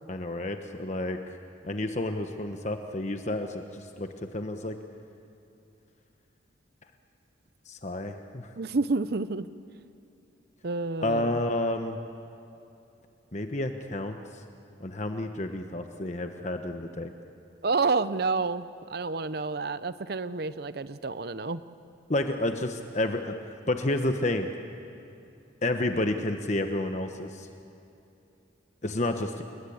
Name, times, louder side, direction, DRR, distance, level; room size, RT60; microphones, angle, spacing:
voice 1, 0.1-1.2 1.6-4.8 7.7-8.5 11.0-12.0 13.3-14.2 14.8-17.1 22.1-23.3 23.7-24.5 25.6-27.5 28.8-29.4, left 1 dB, 40° left, 6 dB, 1.1 m, -30 dB
voice 2, 8.6-9.5 10.6-11.4 17.6-21.6, right 3 dB, 55° right, 13 dB, 0.7 m, -29 dB
29.5 x 21.5 x 8.6 m, 2.8 s
head